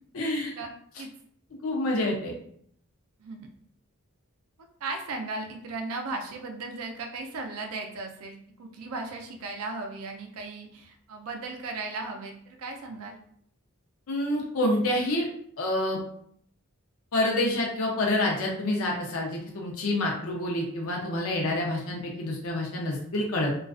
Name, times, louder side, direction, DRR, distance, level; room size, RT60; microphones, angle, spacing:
voice 1, 0.1-0.5 1.6-2.3 14.1-15.3 15.6-16.0 17.1-23.5, left 1 dB, 75° left, -1 dB, 0.6 m, -27 dB
voice 2, 4.8-13.2, right 3 dB, 85° right, 2 dB, 0.4 m, -36 dB
2.3 x 2.3 x 2.3 m, 0.65 s
head